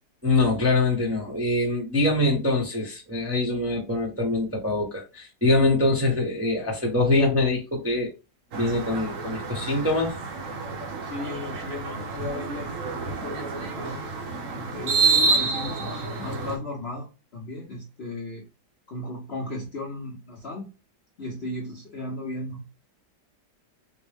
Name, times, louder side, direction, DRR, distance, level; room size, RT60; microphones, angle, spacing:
voice 1, 0.2-8.1 8.5-10.1, left 2 dB, 10° right, 0.6 m, -24 dB
sound 1, 8.5-16.6, right 4 dB, 60° right, 1.0 m, -28 dB
voice 2, 11.1-14.0 14.5-18.4 18.9-20.7 21.2-22.6, left 2 dB, 55° left, 0.7 m, -36 dB
4.4 x 2.1 x 3.3 m
omnidirectional pair, 1.8 m